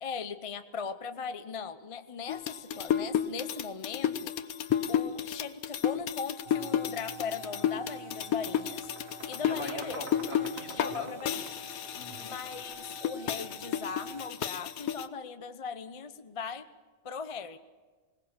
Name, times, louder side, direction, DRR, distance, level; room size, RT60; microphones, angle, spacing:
voice 1, 0.0-4.3 4.9-8.9 9.3-10.0 10.7-11.5 12.2-16.6 17.0-17.6, left 6 dB, 30° left, 10 dB, 0.6 m, -39 dB
sound 1, 2.3-11.0 11.3-15.1, left 9 dB, 90° left, 1.3 m, -32 dB
sound 2, 6.4-14.3, right 4 dB, 50° right, 0.9 m, -49 dB
sound 3, 7.4-7.6 7.9-12.9, right 3 dB, 70° right, 2.0 m, -49 dB
voice 2, 9.4-11.1 11.9-12.3, left 1 dB, 70° left, -1 dB, 4.9 m, -41 dB
20.5 x 19.0 x 7.3 m, 1.4 s
omnidirectional pair, 1.5 m